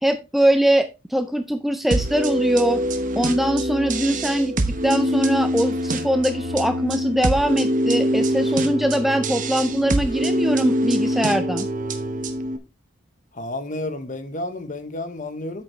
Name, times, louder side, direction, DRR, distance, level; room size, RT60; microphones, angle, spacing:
voice 1, 0.0-2.8 3.2-4.5 4.8-11.7, right 1 dB, ahead, 0.5 m, -22 dB
sound 1, 1.9-12.6, equal, 40° right, 1.0 m, -24 dB
voice 2, 13.3-15.6, left 2 dB, 40° left, 1.1 m, -31 dB
9.1 x 7.3 x 3.2 m
head